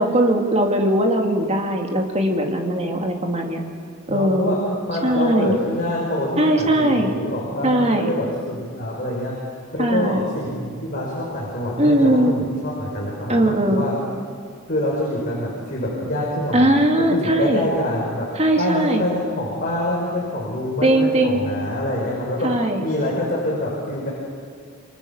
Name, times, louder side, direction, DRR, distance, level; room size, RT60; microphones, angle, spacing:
voice 1, 0.0-3.6 4.1-4.6 5.0-5.6 6.4-7.1 7.6-8.1 9.8-10.3 11.8-12.3 13.3-13.8 16.5-17.7 18.4-19.0 20.8-21.4 22.4-22.8, right 1 dB, 30° right, 3 dB, 2.6 m, -19 dB
voice 2, 4.1-4.6 4.9-9.3 9.7-13.9 14.7-16.8 17.1-22.5 22.8-24.1, left 1 dB, 40° left, -4 dB, 5.5 m, -25 dB
28.0 x 23.5 x 7.2 m, 2.1 s
head